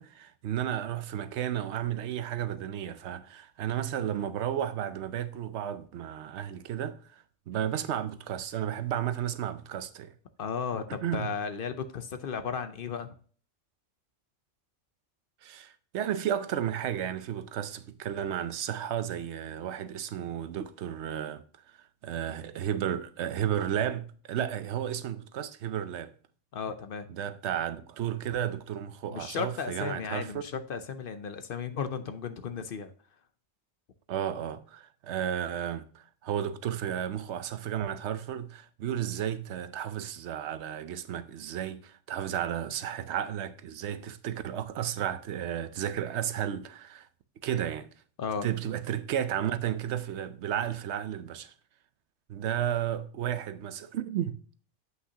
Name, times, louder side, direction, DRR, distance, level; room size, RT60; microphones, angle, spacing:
voice 1, 0.0-10.1 11.0-11.3 15.4-21.4 22.0-26.1 27.1-30.4 34.1-47.1 47.4-47.9 48.4-51.5 52.3-54.4, right 10 dB, 75° right, 0.9 m, -33 dB
voice 2, 10.4-13.1 26.5-27.1 29.1-32.9 48.2-48.5, left 6 dB, 60° left, 0.7 m, -35 dB
8.0 x 5.6 x 2.8 m
omnidirectional pair, 1.2 m